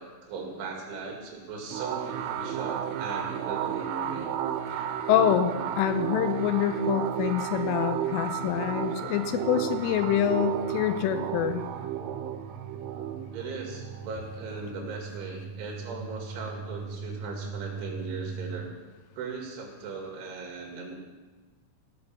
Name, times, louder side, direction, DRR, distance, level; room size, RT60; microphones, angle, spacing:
voice 1, 0.0-4.3 13.3-18.7 19.1-20.9, right 4 dB, 70° right, 0 dB, 4.4 m, -38 dB
sound 1, 1.7-14.9, right 10 dB, 85° right, 3.4 m, -32 dB
voice 2, 4.8-11.6, left 11 dB, 80° left, 9 dB, 3.1 m, -26 dB
sound 2, 9.4-18.6, right 4 dB, 30° right, 5.6 m, -41 dB
16.0 x 6.6 x 7.0 m, 1.3 s
omnidirectional pair, 5.9 m